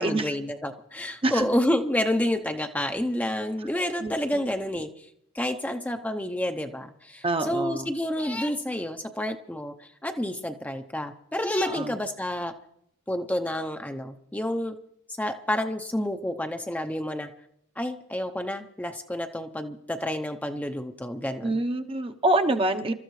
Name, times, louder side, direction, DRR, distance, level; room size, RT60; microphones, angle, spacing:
voice 1, 0.0-5.1 5.3-12.5 13.1-14.8 15.2-17.3 17.8-21.5, left 1 dB, 5° left, 5 dB, 0.7 m, -29 dB
voice 2, 7.2-7.9 11.7-11.9 21.4-22.9, right 2 dB, 25° right, 6 dB, 0.8 m, -25 dB
27.5 x 13.5 x 3.2 m, 0.73 s
head